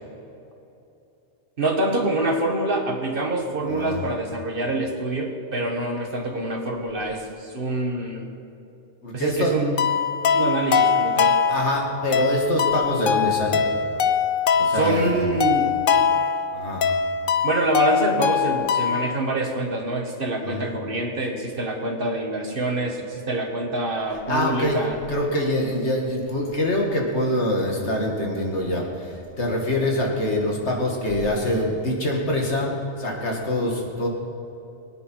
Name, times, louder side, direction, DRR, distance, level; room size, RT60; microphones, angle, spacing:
voice 1, 1.6-8.3 9.1-9.9 10.3-11.4 14.7-15.7 17.4-25.0, right 2 dB, 50° right, 2 dB, 1.8 m, -25 dB
voice 2, 3.7-4.0 9.0-9.5 11.5-13.7 14.6-15.4 16.5-16.9 20.4-20.6 24.3-24.8 25.1-34.1, left 1 dB, 70° left, 0 dB, 2.5 m, -25 dB
sound 1, 9.8-19.2, left 6 dB, 55° left, 0.7 m, -22 dB
23.0 x 9.3 x 4.7 m, 2.8 s
omnidirectional pair, 1.2 m